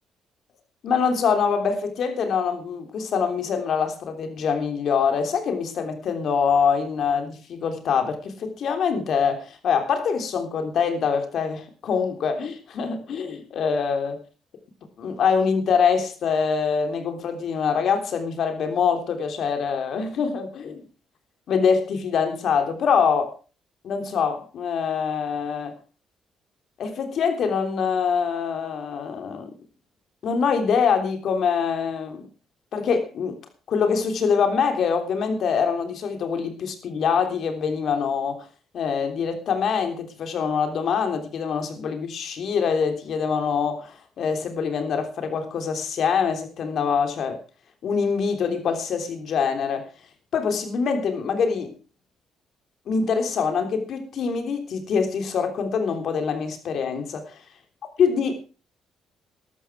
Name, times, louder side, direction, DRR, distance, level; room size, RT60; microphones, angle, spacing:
voice 1, 0.8-14.2 15.0-20.8 21.5-23.3 23.8-25.7 26.8-29.5 30.2-32.3 32.7-33.4 33.7-38.5 38.7-47.4 47.8-49.9 50.3-51.7 52.9-57.4 58.0-58.4, left 6 dB, 65° left, 3.4 m, -24 dB
13.5 x 12.5 x 4.8 m
cardioid pair, 90°, 0 cm